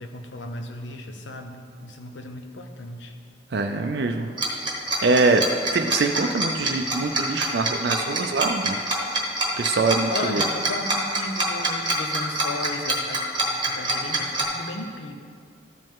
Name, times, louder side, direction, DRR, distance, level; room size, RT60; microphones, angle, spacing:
voice 1, 0.0-3.1 10.1-13.2 13.6-15.2, left 2 dB, 75° left, 5 dB, 0.8 m, -35 dB
voice 2, 3.5-4.3 5.0-5.4 5.7-8.8 9.6-10.4, right 3 dB, 60° right, 4 dB, 0.4 m, -23 dB
Tick-tock, 4.4-14.4, right 2 dB, 25° right, 1.1 m, -25 dB
13.0 x 5.4 x 3.7 m, 2.2 s
head